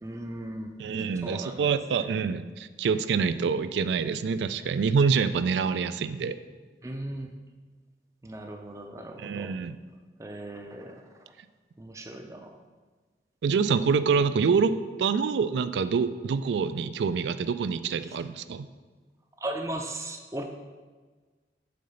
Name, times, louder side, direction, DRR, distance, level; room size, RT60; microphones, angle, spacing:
voice 1, 0.0-0.7 1.2-1.6 6.8-7.3 8.2-9.6 10.2-11.1 11.8-12.6 19.4-20.4, right 1 dB, 15° right, 5 dB, 0.5 m, -37 dB
voice 2, 0.8-6.4 9.2-9.8 13.4-14.7 15.0-18.7, right 5 dB, 85° right, 13 dB, 0.3 m, -26 dB
6.7 x 3.8 x 5.5 m, 1.4 s
head